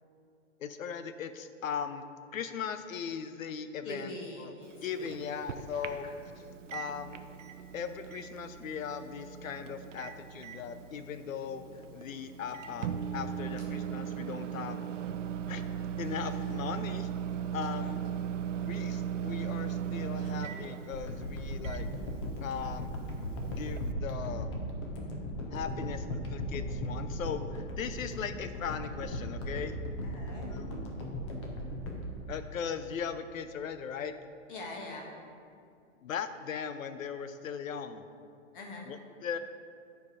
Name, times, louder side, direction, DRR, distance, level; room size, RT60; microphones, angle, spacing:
voice 1, 0.6-2.1 2.3-4.1 4.4-4.5 4.8-6.1 6.7-7.2 7.7-11.6 11.9-14.8 15.5-15.6 16.0-17.1 17.5-18.0 18.6-21.9 22.4-22.9 23.5-24.5 25.5-29.8 30.5-30.7 32.3-34.1 36.0-38.1 38.9-39.4, left 7 dB, 90° left, 10 dB, 0.7 m, -38 dB
voice 2, 3.8-5.4 5.6-6.1 17.6-18.0 25.0-25.2 25.8-26.0 30.0-30.5 34.5-35.2 38.5-38.9, left 2 dB, 40° left, 0 dB, 1.6 m, -44 dB
Microwave oven, 4.6-23.9, right 8 dB, 70° right, 0.6 m, -38 dB
sound 1, 20.9-33.1 33.7-33.8, equal, 20° left, 0.7 m, -37 dB
9.5 x 4.5 x 5.0 m, 2.4 s
hypercardioid pair, 160°, 39 cm